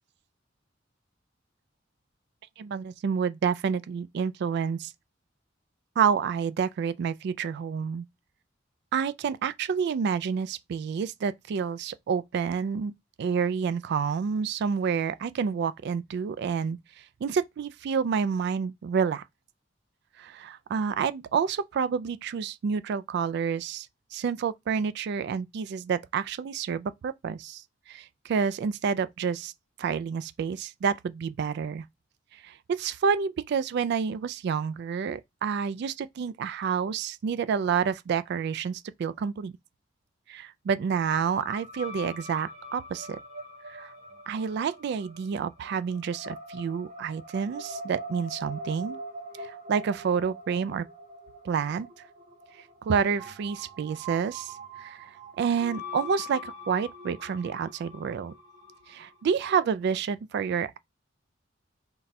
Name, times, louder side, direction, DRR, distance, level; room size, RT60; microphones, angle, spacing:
voice 1, 2.6-4.9 6.0-8.0 8.9-12.9 13.2-16.8 17.2-19.2 20.2-23.9 24.1-27.6 27.9-29.5 29.8-31.8 32.3-39.6 40.3-43.2 43.7-43.9 44.3-49.0 49.4-50.8 51.4-51.9 52.8-54.5 54.8-58.3 58.9-60.8, right 6 dB, 60° right, 0.3 m, -29 dB
sound 1, 41.1-59.2, equal, 40° right, 0.9 m, -43 dB
4.0 x 2.3 x 4.2 m
head